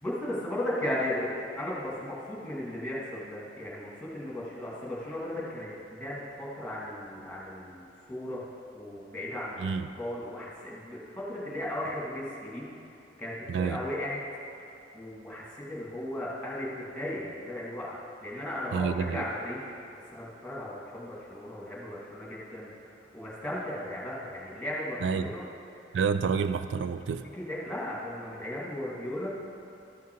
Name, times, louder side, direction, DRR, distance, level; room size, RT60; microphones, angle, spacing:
voice 1, 0.0-8.4 8.7-9.6 10.0-12.7 13.2-14.2 14.9-19.6 20.1-25.5 27.3-29.4, left 1 dB, 5° left, -6 dB, 2.1 m, -36 dB
voice 2, 9.6-9.9 13.5-13.8 18.7-19.3 25.0-25.3 25.9-27.3, right 6 dB, 80° right, 11 dB, 0.3 m, -29 dB
13.5 x 5.8 x 4.6 m, 2.8 s
head